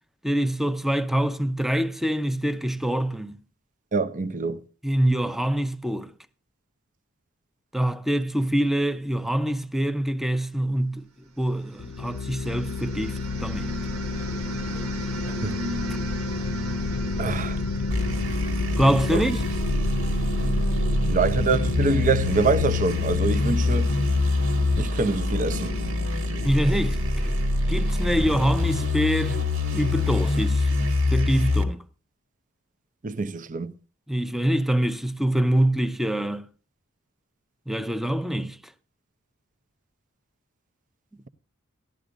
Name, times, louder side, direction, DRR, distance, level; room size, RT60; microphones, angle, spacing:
voice 1, 0.2-3.4 4.8-6.1 7.7-11.1 11.4-13.7 15.9-16.0 18.8-19.4 26.4-27.4 27.7-29.4 29.7-31.8 34.1-36.5 37.7-38.6, right 1 dB, ahead, 0.6 m, -25 dB
voice 2, 3.9-4.6 15.3-15.5 17.2-17.6 19.1-19.2 21.1-23.9 24.8-25.7 33.0-33.7, right 4 dB, 40° right, 0.7 m, -25 dB
sound 1, 11.5-19.4, right 1 dB, 90° right, 1.3 m, -37 dB
sound 2, 11.8-28.0, left 3 dB, 55° left, 0.6 m, -32 dB
sound 3, 17.9-31.6, left 2 dB, 70° right, 2.0 m, -25 dB
17.0 x 12.0 x 2.5 m
head